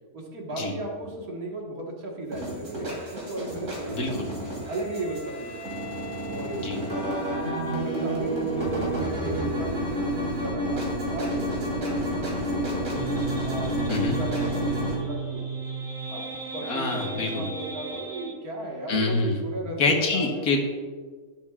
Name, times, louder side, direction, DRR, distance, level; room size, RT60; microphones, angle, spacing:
voice 1, 0.1-4.2 4.7-5.6 6.3-6.7 7.8-13.1 13.4-15.4 16.1-16.2 16.5-20.5, right 2 dB, 85° right, -1 dB, 2.2 m, -35 dB
sound 1, 2.3-14.9, equal, 60° right, 3.0 m, -30 dB
Wind instrument woodwind instrument, 3.7-7.9, equal, 50° left, 2.5 m, -43 dB
voice 2, 3.9-4.3 6.6-6.8 13.9-14.1 16.6-17.5 18.9-19.4 19.8-20.6, left 3 dB, 90° left, 2 dB, 1.8 m, -26 dB
sound 2, 13.0-18.4, right 5 dB, 5° right, 1.6 m, -34 dB
11.5 x 10.5 x 2.5 m, 1.5 s
omnidirectional pair, 1.5 m